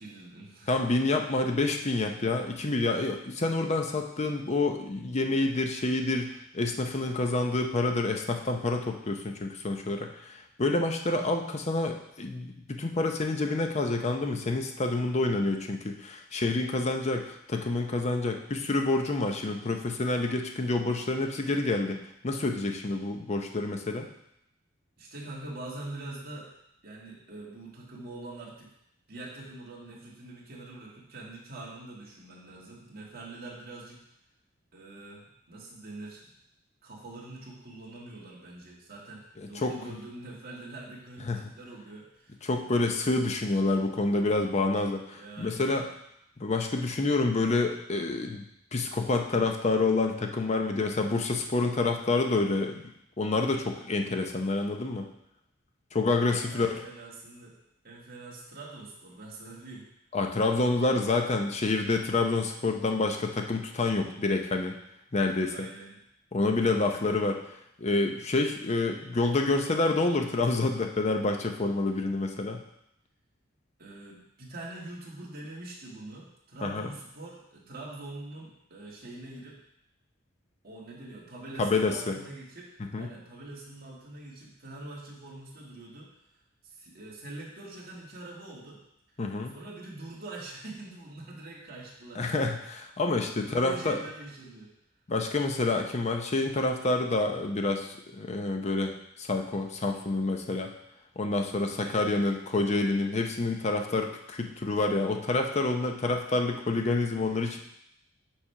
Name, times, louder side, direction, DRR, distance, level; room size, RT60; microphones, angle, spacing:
voice 1, 0.0-1.0 25.0-26.5 26.8-28.7 29.1-34.0 34.7-36.3 36.8-42.4 45.1-45.7 56.4-57.6 57.8-59.9 65.5-65.9 73.8-79.6 80.6-82.7 82.9-86.1 86.6-88.8 89.5-92.3 93.1-94.7 101.8-102.2, right 2 dB, 50° right, -4 dB, 1.8 m, -44 dB
voice 2, 0.7-24.1 39.6-39.7 41.3-41.4 42.4-45.9 46.4-48.4 48.7-52.8 53.2-55.1 55.9-56.8 60.1-64.7 65.1-65.7 66.3-67.4 67.8-72.6 76.6-76.9 81.6-82.2 82.9-83.1 89.2-89.5 92.2-94.0 95.1-100.7 101.2-107.6, left 2 dB, 35° left, 4 dB, 0.7 m, -28 dB
7.2 x 3.4 x 5.6 m, 0.77 s
head